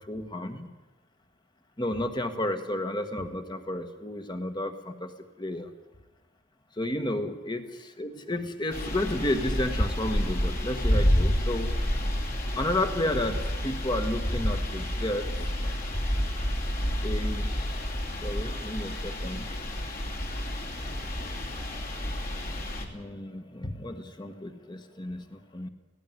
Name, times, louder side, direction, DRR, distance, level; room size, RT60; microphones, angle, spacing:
voice 1, 0.1-0.7 1.8-5.1 5.4-5.6 6.8-11.8 12.5-15.5 17.0-17.7 18.2-19.5 21.7-21.9 22.8-25.7, left 1 dB, 20° left, 7 dB, 1.5 m, -32 dB
sound 1, 8.7-22.8, equal, 45° left, 2.7 m, -29 dB
18.5 x 16.0 x 9.4 m, 1.2 s
head